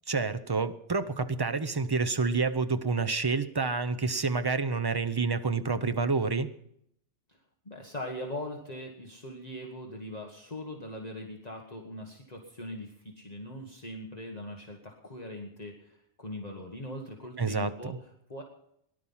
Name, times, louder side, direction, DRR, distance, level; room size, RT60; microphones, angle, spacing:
voice 1, 0.1-6.5 17.4-18.0, right 4 dB, 25° right, 11 dB, 0.6 m, -28 dB
voice 2, 7.6-18.4, left 1 dB, 35° left, 0 dB, 1.6 m, -41 dB
18.5 x 11.5 x 5.6 m, 0.74 s
omnidirectional pair, 1.2 m